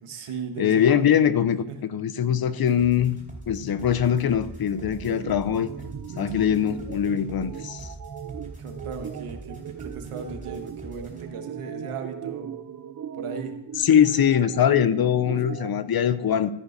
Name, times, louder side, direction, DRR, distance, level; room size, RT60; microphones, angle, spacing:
voice 1, 0.0-1.1 1.7-1.8 6.3-6.4 8.4-12.6 13.1-13.5 15.7-15.8, right 5 dB, 85° right, 1.4 m, -37 dB
voice 2, 0.6-3.2 3.5-5.7 6.2-7.9 13.8-16.5, left 9 dB, 50° left, 0.6 m, -22 dB
sound 1, 2.6-12.5, right 3 dB, 15° right, 2.6 m, -42 dB
sound 2, 4.6-15.7, right 9 dB, 40° right, 0.5 m, -38 dB
14.0 x 5.3 x 5.2 m
wide cardioid pair, 135°, 50 cm